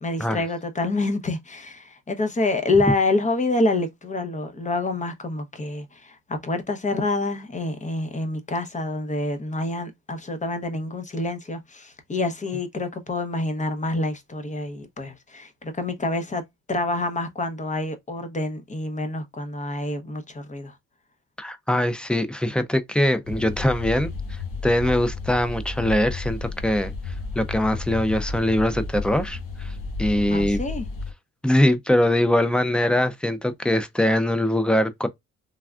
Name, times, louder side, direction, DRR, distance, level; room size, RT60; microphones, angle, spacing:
voice 1, 0.0-16.4 16.7-20.8 30.3-30.9, left 2 dB, 25° left, 0.8 m, -27 dB
voice 2, 21.4-29.7 30.0-30.6 31.4-35.1, left 1 dB, 5° left, 0.5 m, -22 dB
sound 1, 23.2-31.1, left 3 dB, 85° left, 1.1 m, -32 dB
3.4 x 2.2 x 2.3 m
cardioid pair, 90°, 30 cm